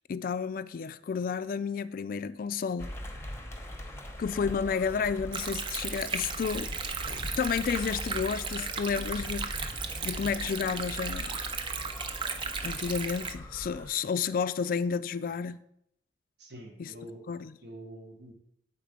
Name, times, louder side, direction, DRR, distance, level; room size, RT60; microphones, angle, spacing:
voice 1, 0.1-2.9 4.2-6.7 7.1-9.7 10.0-11.4 12.6-15.6 16.8-16.9 17.3-17.5, left 6 dB, 50° left, 0.3 m, -31 dB
sound 1, 2.8-13.9, equal, 15° left, 0.8 m, -41 dB
Stream, 5.3-13.3, right 5 dB, 30° right, 0.5 m, -36 dB
voice 2, 16.4-17.2 17.6-18.3, right 1 dB, 70° right, 1.2 m, -45 dB
8.0 x 4.2 x 5.0 m
head